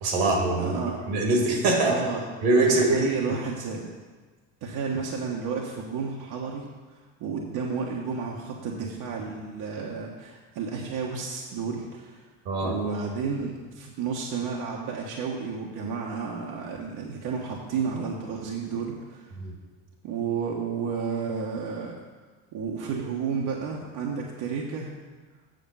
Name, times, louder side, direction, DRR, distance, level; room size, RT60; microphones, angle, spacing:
voice 1, 0.0-0.8 1.1-2.0 2.4-3.1 12.5-12.8 19.4-19.5, right 2 dB, 80° right, 1 dB, 2.1 m, -23 dB
voice 2, 0.6-1.0 1.9-2.2 2.7-3.8 4.6-6.6 7.2-12.3 12.6-19.3 20.0-21.9 22.5-24.9, right 5 dB, 60° right, -2 dB, 1.3 m, -31 dB
7.8 x 6.6 x 5.5 m, 1.4 s
hypercardioid pair, 75°, 42 cm